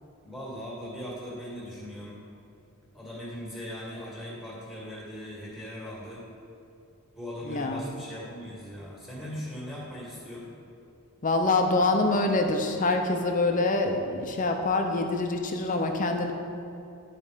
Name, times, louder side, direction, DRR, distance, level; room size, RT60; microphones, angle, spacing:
voice 1, 0.2-2.2 2.9-6.2 7.2-10.5, equal, ahead, -6 dB, 2.1 m, -39 dB
voice 2, 7.4-7.9 11.2-16.3, left 2 dB, 35° left, 4 dB, 0.7 m, -25 dB
10.0 x 4.2 x 5.0 m, 2.6 s
head